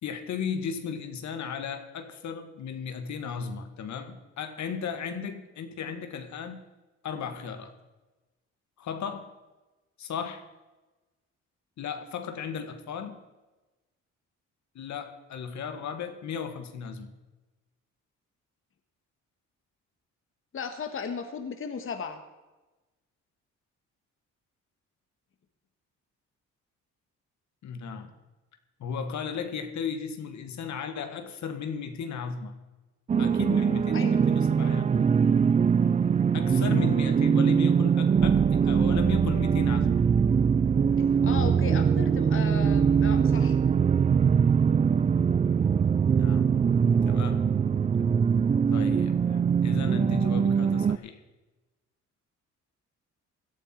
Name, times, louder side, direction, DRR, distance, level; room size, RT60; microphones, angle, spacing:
voice 1, 0.0-6.6 7.0-7.7 8.8-9.3 10.0-10.4 11.8-13.2 14.8-17.1 27.6-28.1 28.8-32.5 33.2-35.0 36.3-40.0 46.1-46.5 47.1-47.5 48.7-51.2, left 6 dB, 65° left, 8 dB, 1.8 m, -35 dB
voice 2, 20.5-22.2 33.9-34.1 41.0-43.6, left 6 dB, 45° left, 7 dB, 1.5 m, -36 dB
sound 1, 33.1-51.0, right 6 dB, 25° right, 0.4 m, -22 dB
17.0 x 12.0 x 4.5 m, 1.1 s
cardioid pair, 90°, 30 cm